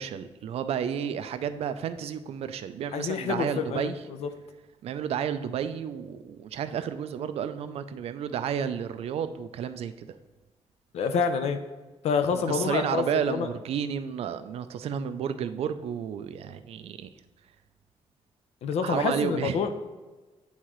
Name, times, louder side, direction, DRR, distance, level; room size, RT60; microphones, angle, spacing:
voice 1, 0.0-4.0 4.8-10.1 12.3-17.1 18.8-19.6, right 8 dB, 70° right, 11 dB, 0.4 m, -31 dB
voice 2, 2.9-3.9 4.2-4.3 10.9-11.6 12.0-13.5 18.6-19.7, left 6 dB, 85° left, 8 dB, 0.6 m, -27 dB
9.4 x 3.7 x 3.1 m, 1.2 s
wide cardioid pair, 180°, 11 cm